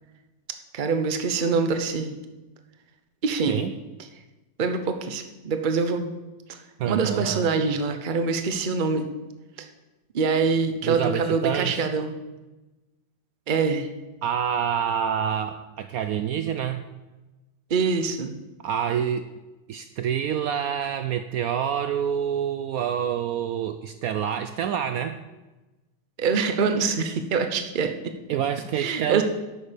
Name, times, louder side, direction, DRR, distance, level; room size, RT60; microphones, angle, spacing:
voice 1, 0.7-2.1 3.2-3.6 4.6-6.1 6.5-6.6 6.9-9.1 9.6-9.7 10.1-12.1 13.5-13.9 17.7-18.4 26.2-28.1 28.8-29.2, right 5 dB, 40° right, 7 dB, 0.8 m, -24 dB
voice 2, 6.8-7.5 10.8-11.8 14.2-16.8 18.6-19.3 19.7-25.2 28.3-29.2, right 8 dB, 70° right, 9 dB, 0.9 m, -27 dB
11.5 x 8.7 x 5.1 m, 1.1 s
omnidirectional pair, 1.8 m